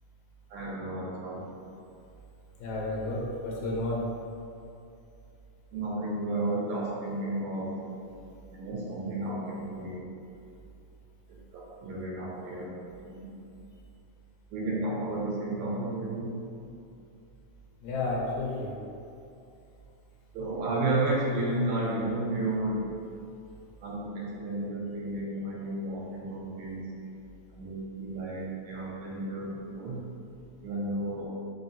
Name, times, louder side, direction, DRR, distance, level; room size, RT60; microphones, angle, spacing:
voice 1, 0.5-1.5 5.7-7.7 8.5-10.1 11.5-13.3 14.5-16.3 20.3-22.8 23.8-26.9 27.6-30.0 30.6-31.3, right 2 dB, 80° right, -4 dB, 1.9 m, -32 dB
voice 2, 2.6-4.0 17.8-18.7, left 2 dB, 85° left, -3 dB, 2.0 m, -31 dB
5.0 x 2.7 x 2.7 m, 2.6 s
omnidirectional pair, 3.3 m